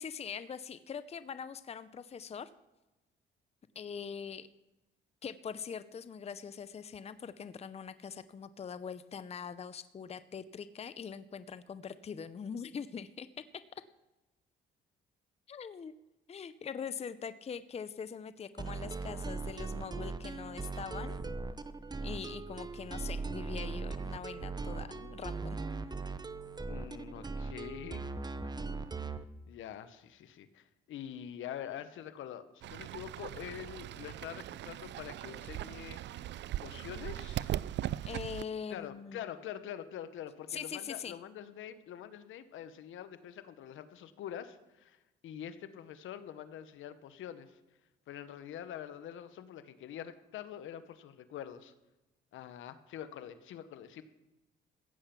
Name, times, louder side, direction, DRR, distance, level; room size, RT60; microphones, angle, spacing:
voice 1, 0.0-2.5 3.8-4.5 5.2-13.3 15.5-15.9 16.3-21.2 22.0-25.6 25.8-25.9 38.1-39.3 40.5-41.1, left 7 dB, 30° left, 14 dB, 0.6 m, -42 dB
sound 1, 18.6-29.2, right 4 dB, 20° right, 0.8 m, -39 dB
voice 2, 26.7-28.5 29.0-29.2 29.5-36.0 36.6-37.5 38.7-47.6 48.1-51.7 52.3-54.0, left 10 dB, 80° left, 12 dB, 1.1 m, -45 dB
Fowl / Bird, 32.6-38.4, right 13 dB, 65° right, 0.4 m, -39 dB
15.5 x 8.6 x 6.0 m, 1.0 s
cardioid pair, 90°, 20 cm